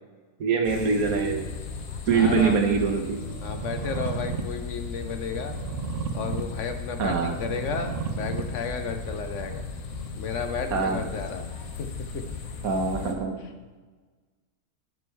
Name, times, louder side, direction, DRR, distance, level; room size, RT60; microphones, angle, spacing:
voice 1, 0.4-1.4 2.1-3.2 7.0-7.4 10.7-11.1 12.6-13.4, right 5 dB, 90° right, 4 dB, 1.5 m, -24 dB
sound 1, 0.6-13.1, left 5 dB, 80° left, 1.3 m, -37 dB
voice 2, 2.1-2.8 3.4-5.5 6.1-9.6 10.1-11.5 11.8-11.9 12.1-12.2 13.4-13.5, left 5 dB, 65° left, 6 dB, 1.0 m, -33 dB
sound 2, 2.1-10.1, right 6 dB, 55° right, 0.7 m, -36 dB
10.0 x 6.9 x 3.2 m, 1.4 s
omnidirectional pair, 1.5 m